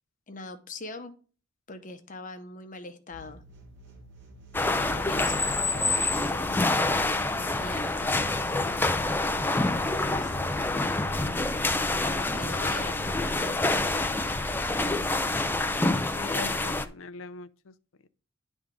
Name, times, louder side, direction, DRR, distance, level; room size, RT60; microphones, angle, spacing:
voice 1, 0.3-1.1 1.7-3.4 4.9-7.0 7.3-8.1 9.8-10.6 11.1-14.1 16.4-16.6, left 2 dB, 40° left, 0.8 m, -42 dB
sound 1, 3.1-16.0, equal, 60° right, 1.8 m, -49 dB
sound 2, 4.5-16.9, left 2 dB, 10° left, 0.4 m, -27 dB
voice 2, 16.1-17.7, left 5 dB, 75° left, 0.5 m, -43 dB
10.5 x 3.6 x 5.1 m
head